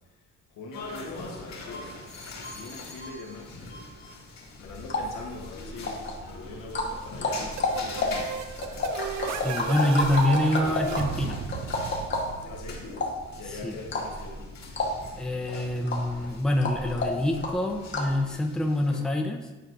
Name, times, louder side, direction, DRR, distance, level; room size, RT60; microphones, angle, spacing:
voice 1, 0.5-8.6 12.4-12.9 13.3-14.5, left 3 dB, 90° left, 0 dB, 1.2 m, -43 dB
sound 1, 0.7-19.0, left 2 dB, 65° left, 1.8 m, -43 dB
sound 2, 4.7-18.2, left 2 dB, 40° left, 1.0 m, -32 dB
sound 3, 7.6-13.2, right 8 dB, 70° right, 0.5 m, -35 dB
voice 2, 9.3-11.4 13.6-13.7 15.2-19.5, left 1 dB, ahead, 2 dB, 0.6 m, -26 dB
9.7 x 4.4 x 2.6 m, 1.2 s
cardioid pair, 90°, 30 cm